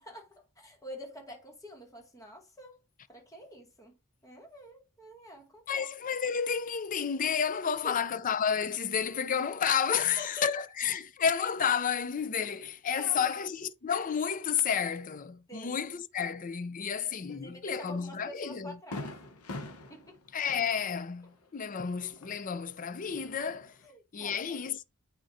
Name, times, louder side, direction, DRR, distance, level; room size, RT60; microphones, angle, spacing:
voice 1, 0.0-2.8 3.1-5.9 7.8-8.0 10.2-10.5 13.0-13.4 15.5-15.8 17.3-19.2 19.9-20.2 23.8-24.7, left 1 dB, 15° left, 2.0 m, -47 dB
voice 2, 5.7-18.8 20.3-23.8 24.1-24.8, left 7 dB, 35° left, 0.5 m, -31 dB
Fireworks, 17.9-18.0 18.4-18.5 18.9-22.7 23.0-23.9, left 2 dB, 85° left, 1.0 m, -44 dB
9.0 x 4.4 x 2.7 m
head